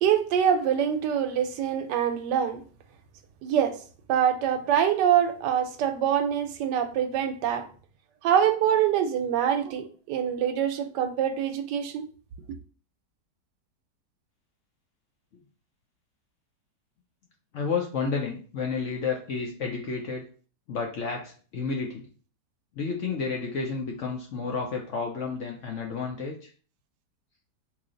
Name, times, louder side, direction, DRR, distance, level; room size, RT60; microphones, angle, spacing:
voice 1, 0.0-2.6 3.4-3.8 4.1-7.7 8.2-12.0, right 9 dB, 85° right, 1.2 m, -25 dB
voice 2, 17.5-20.3 20.7-22.1 22.8-26.4, left 5 dB, 65° left, 0.8 m, -31 dB
3.1 x 2.7 x 3.7 m
omnidirectional pair, 1.8 m